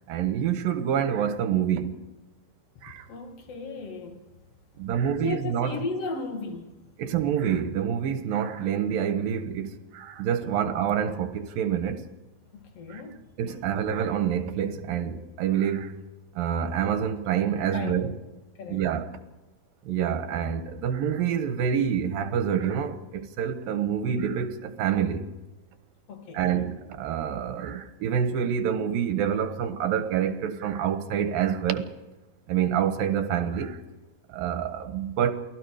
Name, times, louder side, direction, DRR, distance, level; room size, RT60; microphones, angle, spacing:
voice 1, 0.1-2.1 2.8-3.1 4.8-5.8 7.0-12.1 12.9-13.0 13.4-16.0 16.3-18.1 18.7-19.2 19.9-25.3 26.3-31.9 32.5-33.8 34.3-35.3, right 8 dB, 80° right, 3.0 m, -27 dB
voice 2, 2.7-4.3 4.8-6.8 10.4-10.6 12.5-13.6 17.7-18.1 18.6-18.8 26.1-26.7, left 3 dB, 45° left, 3.1 m, -36 dB
29.0 x 19.0 x 5.0 m
omnidirectional pair, 4.0 m